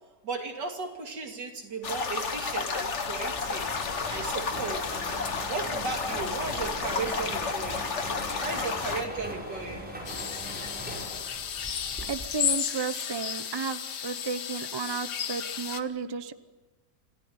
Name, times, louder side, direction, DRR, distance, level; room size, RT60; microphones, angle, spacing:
voice 1, 0.2-3.8 4.1-4.9 5.5-7.9 8.4-9.9, right 4 dB, 85° right, 3 dB, 3.3 m, -35 dB
sound 1, 1.8-9.1, left 5 dB, 45° left, 1.6 m, -32 dB
sound 2, 3.2-12.5, equal, 5° right, 5.8 m, -40 dB
sound 3, 10.1-15.8, left 8 dB, 80° left, 1.7 m, -33 dB
voice 2, 11.6-16.3, right 5 dB, 30° right, 12 dB, 0.4 m, -34 dB
27.0 x 15.0 x 9.5 m, 1.3 s
omnidirectional pair, 1.8 m